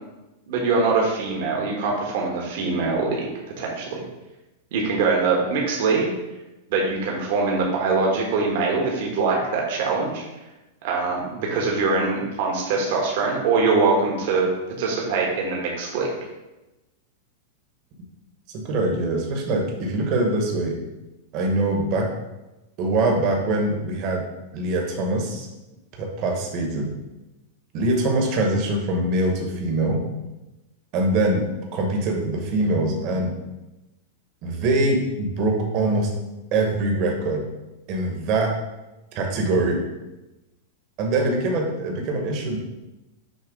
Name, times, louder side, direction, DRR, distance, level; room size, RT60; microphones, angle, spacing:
voice 1, 0.5-3.3 3.6-4.0 4.7-6.1 6.7-10.2 10.8-14.5 14.8-16.1, right 4 dB, 55° right, -2 dB, 1.2 m, -23 dB
voice 2, 18.5-20.8 21.3-22.1 22.8-24.2 24.5-25.5 26.0-26.9 27.7-30.0 30.9-31.4 31.7-33.3 34.4-36.1 36.5-37.5 37.9-38.5 39.1-39.8 41.0-42.6, right 2 dB, 40° right, 1 dB, 1.1 m, -23 dB
6.4 x 2.9 x 5.2 m, 1.0 s
supercardioid pair, 155°, 0 cm